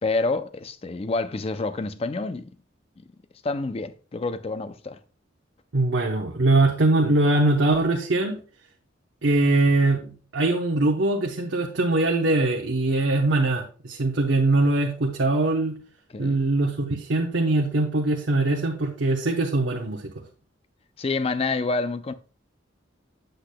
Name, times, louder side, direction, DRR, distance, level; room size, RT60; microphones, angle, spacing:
voice 1, 0.0-2.5 3.4-5.0 16.1-16.4 21.0-22.1, left 3 dB, 30° left, 0.4 m, -28 dB
voice 2, 5.7-8.4 9.2-15.7 16.2-20.0, right 2 dB, 70° right, 0.8 m, -22 dB
8.4 x 7.8 x 2.2 m
head